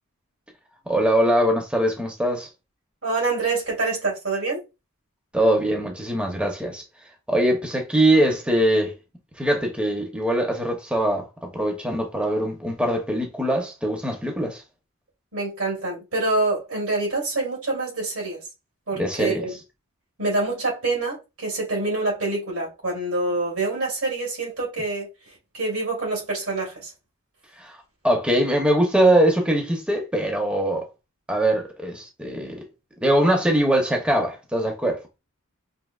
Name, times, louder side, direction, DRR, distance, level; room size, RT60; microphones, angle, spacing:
voice 1, 0.9-2.5 5.3-6.8 7.3-8.9 9.4-14.6 19.0-19.5 27.6-27.8 28.0-30.8 31.3-32.6 33.0-35.0, right 1 dB, 5° right, 0.7 m, -22 dB
voice 2, 3.0-4.6 15.3-18.4 18.9-19.5 20.2-25.1 25.5-26.9, right 3 dB, 90° right, 2.5 m, -26 dB
5.3 x 2.7 x 2.3 m
head